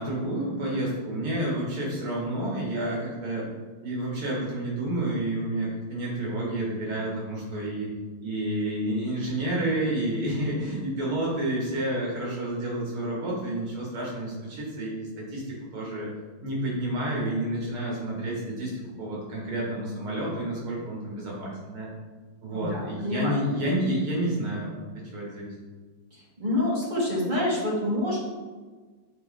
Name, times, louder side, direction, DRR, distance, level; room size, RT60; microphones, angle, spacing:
voice 1, 0.0-3.5 3.8-7.9 8.2-15.4 15.7-16.1 16.4-18.7 19.0-21.9 22.4-24.8 25.1-25.5, right 1 dB, 75° right, -4 dB, 2.7 m, -30 dB
voice 2, 22.5-23.4 26.4-28.2, left 1 dB, 25° right, -7 dB, 1.6 m, -27 dB
7.9 x 3.6 x 3.8 m, 1.4 s
omnidirectional pair, 2.4 m